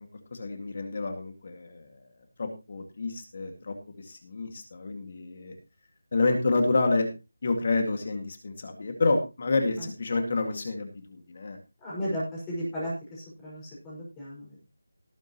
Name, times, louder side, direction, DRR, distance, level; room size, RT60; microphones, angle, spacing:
voice 1, 0.0-1.9 2.4-5.5 6.1-7.1 7.4-11.6, left 3 dB, 35° left, 5 dB, 2.1 m, -29 dB
voice 2, 11.8-14.6, equal, 10° left, -7 dB, 5.5 m, -35 dB
18.5 x 8.9 x 3.0 m, 0.28 s
figure-of-eight pair, 175°, 0 cm